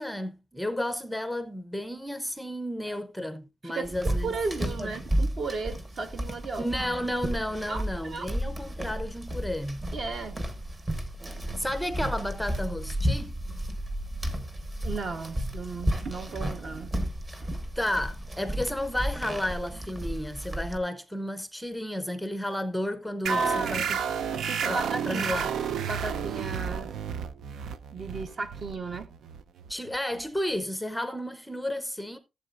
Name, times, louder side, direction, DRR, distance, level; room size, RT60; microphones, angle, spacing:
voice 1, 0.0-4.3 4.6-4.9 6.6-9.9 11.6-13.3 17.8-24.0 24.7-24.8 25.1-25.5 29.7-32.2, left 1 dB, ahead, 0.6 m, -32 dB
voice 2, 3.6-6.7 7.7-8.4 9.9-10.4 14.8-16.9 17.4-17.6 23.3-23.9 24.5-25.4 25.8-27.0 27.9-29.1, right 3 dB, 40° right, 1.1 m, -34 dB
sound 1, 3.8-20.8, right 1 dB, 20° right, 1.4 m, -33 dB
sound 2, 23.3-30.4, right 7 dB, 85° right, 0.7 m, -32 dB
15.5 x 7.8 x 2.5 m
wide cardioid pair, 170°, 0 cm